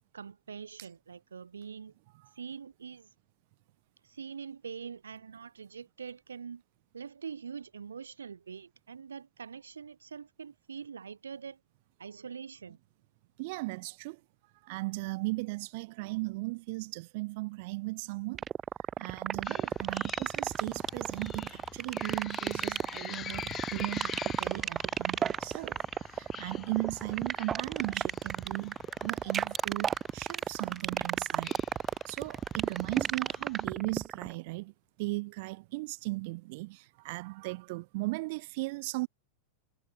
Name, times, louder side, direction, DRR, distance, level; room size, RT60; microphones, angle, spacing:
voice 1, 0.1-1.9 2.4-3.1 4.0-6.6 6.9-11.6 12.0-12.8, right 6 dB, 70° right, 1.3 m, -44 dB
voice 2, 13.4-14.2 14.6-18.4 19.0-28.8 29.0-31.6 32.0-34.7 35.0-39.1, right 24 dB, 50° right, 1.2 m, -37 dB
sound 1, 18.3-34.3, right 8 dB, 25° right, 1.7 m, -32 dB
sound 2, 19.4-33.7, left 9 dB, 25° left, 4.8 m, -47 dB
figure-of-eight pair, 90°, 0 cm